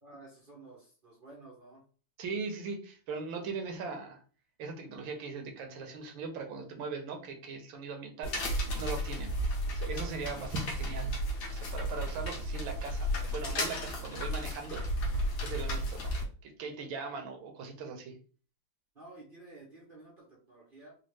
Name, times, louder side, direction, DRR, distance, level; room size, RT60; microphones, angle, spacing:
voice 1, 0.0-1.8 18.9-20.9, right 2 dB, 55° right, -3 dB, 0.6 m, -52 dB
voice 2, 2.2-4.2 4.6-9.3 9.7-11.1 11.5-14.8 15.4-16.1 16.4-18.2, right 4 dB, 70° right, 4 dB, 1.4 m, -39 dB
sound 1, 8.2-16.2, equal, 55° left, 1.4 m, -33 dB
4.2 x 2.2 x 3.1 m, 0.40 s
omnidirectional pair, 2.4 m